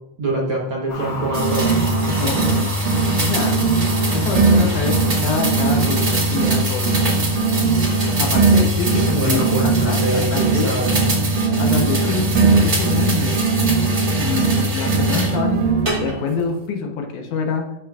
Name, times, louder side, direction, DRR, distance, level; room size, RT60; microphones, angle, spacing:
voice 1, 0.2-1.8 9.1-11.0, right 2 dB, 55° right, -3 dB, 1.5 m, -24 dB
sound 1, 0.9-15.3 15.6-15.7, left 2 dB, 60° left, 4.3 m, -38 dB
sound 2, 0.9-2.6 2.9-6.6 6.9-10.6 10.9-14.6 14.9-16.3, right 4 dB, 85° right, 2.7 m, -20 dB
sound 3, 1.3-15.4 15.9-16.4, equal, 30° right, 1.3 m, -24 dB
voice 2, 2.1-2.6 3.2-3.6 4.1-4.9 5.2-6.9 8.2-10.9 11.6-13.4 14.2-15.6 15.9-17.6, left 5 dB, 75° left, 3 dB, 2.3 m, -26 dB
12.5 x 6.0 x 2.4 m, 0.90 s
omnidirectional pair, 3.7 m